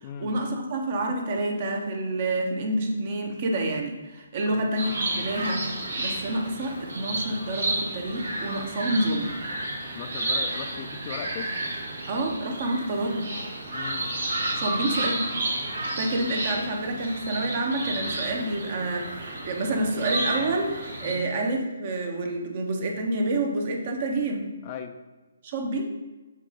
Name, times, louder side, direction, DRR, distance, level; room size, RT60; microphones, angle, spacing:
voice 1, 0.0-9.4 12.1-13.4 14.5-15.3 16.0-24.5 25.4-25.8, right 2 dB, 45° right, 2 dB, 1.0 m, -28 dB
sound 1, 4.8-21.1, right 2 dB, 70° right, 1.4 m, -31 dB
voice 2, 9.9-11.5 13.7-14.0 21.0-21.3 24.6-24.9, left 8 dB, 30° left, 7 dB, 0.4 m, -38 dB
7.0 x 4.0 x 3.7 m, 1.2 s
figure-of-eight pair, 140°, 0 cm